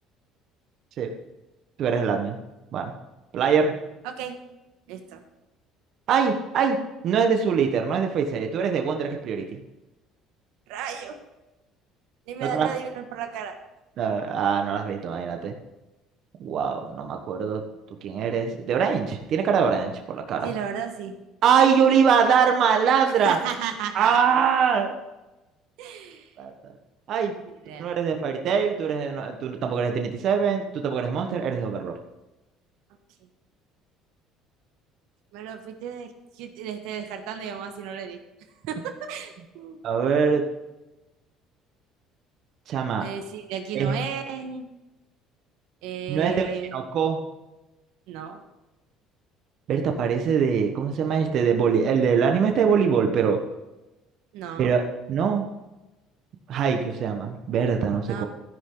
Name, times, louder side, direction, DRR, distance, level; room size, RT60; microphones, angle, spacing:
voice 1, 1.8-2.4 2.7-2.9 3.3-3.7 6.1-6.8 7.0-9.6 12.4-12.7 14.0-15.5 16.4-17.6 18.0-20.5 21.4-23.4 23.9-24.9 26.4-26.5 27.1-27.3 27.8-32.0 39.8-40.4 42.7-43.1 43.7-44.0 46.1-47.2 49.7-53.4 54.6-54.8 55.1-55.5 56.5-58.2, right 6 dB, 45° right, 4 dB, 1.3 m, -23 dB
voice 2, 4.0-4.4 4.9-5.2 10.7-11.2 12.3-13.5 20.4-21.1 23.2-24.2 25.8-26.3 27.4-27.9 35.3-36.1 36.4-38.2 38.7-39.8 43.0-44.7 45.8-46.7 48.1-48.4 54.3-54.7 58.1-58.2, right 8 dB, 80° right, 6 dB, 1.6 m, -34 dB
14.0 x 10.0 x 4.0 m, 1.0 s
cardioid pair, 160°, 0 cm